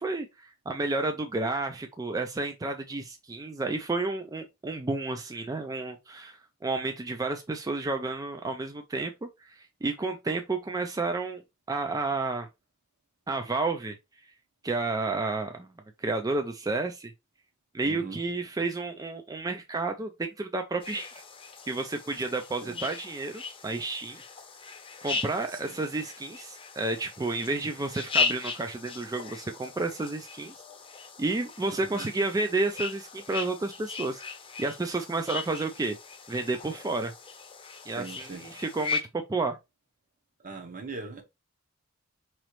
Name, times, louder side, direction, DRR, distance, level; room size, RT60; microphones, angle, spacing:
voice 1, 0.0-11.4 11.7-12.5 13.3-14.0 14.6-15.7 16.0-17.1 17.7-21.2 21.7-24.2 25.0-30.5 31.2-34.2 34.6-36.0 36.3-37.1 37.9-39.6, right 3 dB, 15° right, 0.3 m, -31 dB
voice 2, 17.9-18.2 22.6-22.9 25.5-25.8 31.8-32.1 38.0-38.5 40.4-41.2, right 3 dB, 40° right, 0.9 m, -41 dB
sound 1, 20.8-39.0, left 5 dB, 25° left, 0.7 m, -37 dB
4.9 x 3.1 x 3.0 m
head